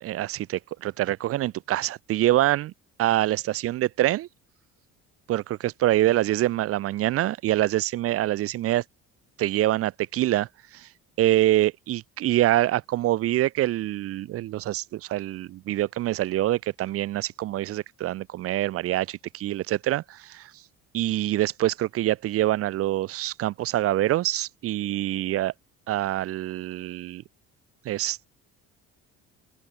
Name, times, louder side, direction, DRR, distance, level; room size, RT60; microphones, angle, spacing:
voice 1, 0.0-2.7 3.0-4.3 5.3-8.8 9.4-10.9 11.2-20.5 20.9-25.5 25.9-27.2 27.8-28.3, right 14 dB, 50° right, 0.6 m, -25 dB
open air
cardioid pair, 155°, 30 cm